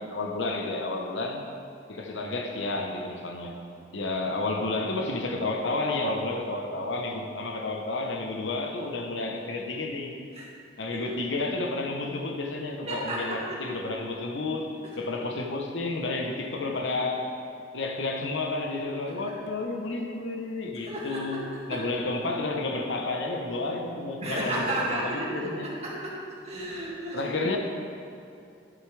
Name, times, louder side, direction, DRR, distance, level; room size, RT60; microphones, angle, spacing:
voice 1, 0.0-1.5 1.9-3.6 3.9-10.1 10.8-17.4 17.7-21.4 21.7-25.7 27.1-27.6, left 2 dB, 70° left, 3 dB, 1.0 m, -31 dB
voice 2, 12.9-13.6 14.8-15.0 19.1-19.2 20.9-21.4 21.7-21.8 24.2-26.2 26.4-27.2, right 1 dB, 35° right, -6 dB, 2.3 m, -33 dB
11.0 x 8.1 x 3.4 m, 2.7 s
head